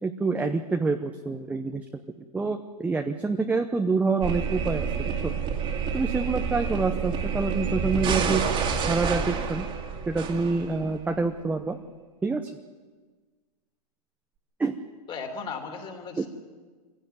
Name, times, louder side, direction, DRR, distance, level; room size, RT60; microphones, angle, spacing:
voice 1, 0.0-1.8 2.2-5.3 5.9-8.4 8.9-9.7 10.1-11.8 12.2-12.5 14.6-14.8 16.2-16.3, right 3 dB, 5° right, 5 dB, 0.8 m, -27 dB
Wind instrument woodwind instrument, 4.2-10.0, left 1 dB, 60° left, 4.9 m, -51 dB
sound 1, 4.2-11.0, right 6 dB, 25° right, 2.2 m, -28 dB
voice 2, 15.1-16.3, left 5 dB, 25° left, 4 dB, 3.1 m, -36 dB
24.0 x 16.0 x 9.5 m, 1.4 s
hypercardioid pair, 145°, 20 cm